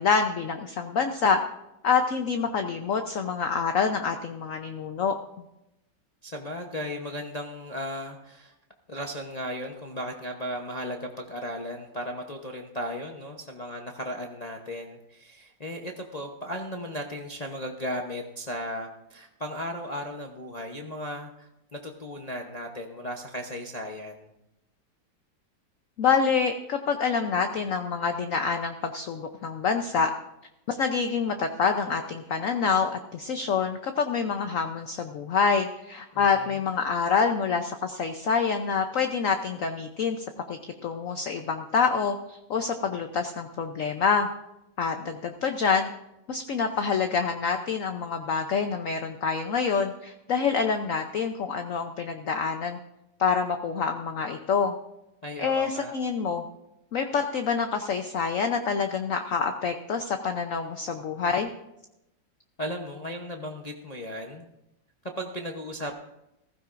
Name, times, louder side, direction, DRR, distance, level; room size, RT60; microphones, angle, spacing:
voice 1, 0.0-1.4 1.8-5.2 26.0-30.1 30.7-44.3 44.8-45.9 46.3-52.8 53.2-54.7 55.4-56.4 56.9-61.5, left 5 dB, 60° left, 6 dB, 0.9 m, -26 dB
voice 2, 6.2-8.5 8.9-24.3 36.1-36.6 55.2-55.9 62.6-64.5 65.2-65.9, equal, 35° left, 2 dB, 0.7 m, -36 dB
15.5 x 15.0 x 2.6 m, 0.88 s
omnidirectional pair, 2.0 m